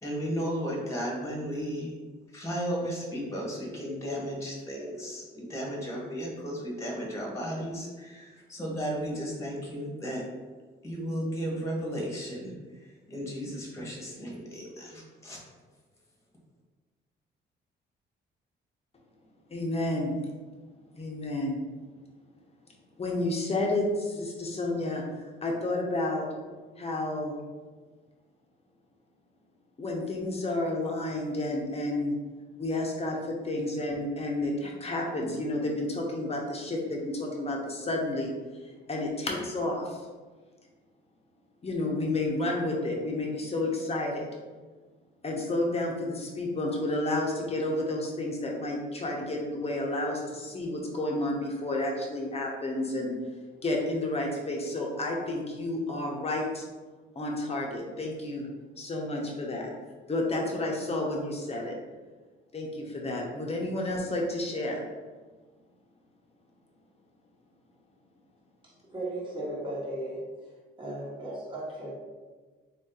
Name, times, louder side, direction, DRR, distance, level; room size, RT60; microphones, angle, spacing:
voice 1, 0.0-1.9 2.3-10.2 10.8-12.5 12.8-15.4, equal, 15° left, -2 dB, 1.3 m, -34 dB
voice 2, 19.5-20.1 21.0-21.6 23.0-26.3 26.8-27.4 29.8-32.2 32.6-38.3 38.6-40.1 41.6-44.3 45.2-53.1 53.6-56.6 57.1-58.5 58.8-59.7 60.1-61.8 62.5-64.9, left 2 dB, 30° left, -1 dB, 0.9 m, -31 dB
voice 3, 68.6-70.2 70.8-71.9, right 1 dB, 25° right, -6 dB, 1.3 m, -36 dB
3.7 x 2.7 x 3.8 m, 1.4 s
cardioid pair, 90°, 20 cm